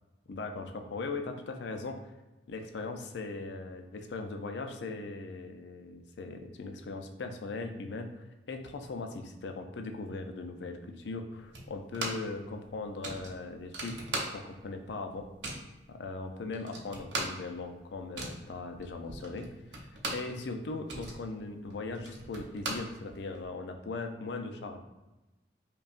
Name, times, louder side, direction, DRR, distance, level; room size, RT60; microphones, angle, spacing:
voice 1, 0.3-2.0 2.5-14.0 14.3-15.3 15.9-24.8, left 3 dB, 80° left, 5 dB, 0.4 m, -39 dB
sound 1, 11.5-12.4 12.6-12.7 13.0-14.7 15.0-15.7 16.2-16.3 16.5-20.4 20.7-23.5, right 2 dB, 85° right, 0.7 m, -39 dB
5.2 x 2.3 x 2.4 m, 1.0 s
head